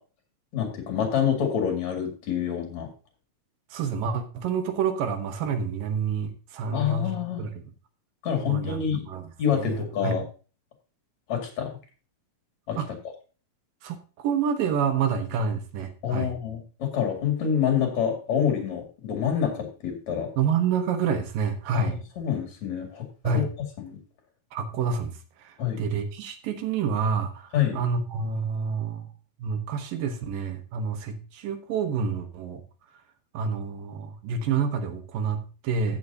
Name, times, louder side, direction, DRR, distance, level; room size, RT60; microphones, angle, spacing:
voice 1, 0.5-2.9 6.7-7.4 8.2-9.1 9.4-10.2 11.3-11.7 12.7-12.8 16.0-20.3 21.7-21.9 22.2-23.5 23.8-24.0 25.6-25.8 27.5-27.8, left 8 dB, 55° left, 3 dB, 3.4 m, -27 dB
voice 2, 3.7-7.6 8.4-8.8 9.1-10.2 12.8-12.9 13.8-16.3 20.4-22.0 23.2-23.5 24.5-29.1 29.4-32.6 33.3-36.0, right 6 dB, 80° right, 7 dB, 2.8 m, -28 dB
14.5 x 7.6 x 2.8 m, 0.34 s
omnidirectional pair, 3.9 m